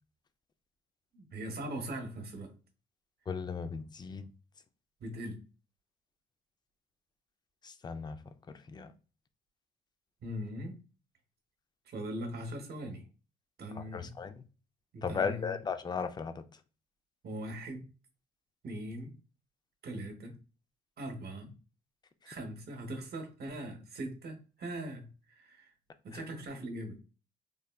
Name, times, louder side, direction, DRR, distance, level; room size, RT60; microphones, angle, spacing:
voice 1, 1.1-2.5 5.0-5.4 10.2-10.8 11.9-13.0 13.6-14.1 14.9-15.5 17.2-17.8 18.6-19.1 19.8-20.4 21.0-21.5 22.2-25.7 26.0-27.0, right 1 dB, 55° right, 0.9 m, -40 dB
voice 2, 3.3-4.3 7.6-8.2 8.7-8.9 13.7-14.4 15.0-16.4 26.1-26.2, left 5 dB, 20° left, 0.3 m, -36 dB
3.7 x 2.1 x 2.2 m
cardioid pair, 90°, 20 cm